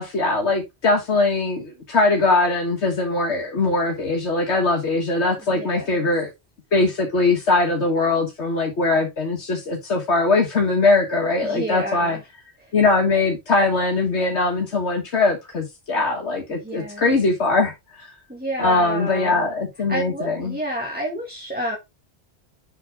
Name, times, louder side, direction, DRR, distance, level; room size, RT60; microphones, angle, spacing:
voice 1, 0.0-6.3 6.7-12.2 12.7-18.1 18.6-20.6, left 3 dB, 85° left, 1.9 m, -21 dB
voice 2, 5.5-6.1 11.4-12.2 12.6-12.7 16.6-17.2 18.3-19.4 19.9-21.8, right 1 dB, 10° right, 2.0 m, -29 dB
7.8 x 6.0 x 3.5 m
omnidirectional pair, 1.1 m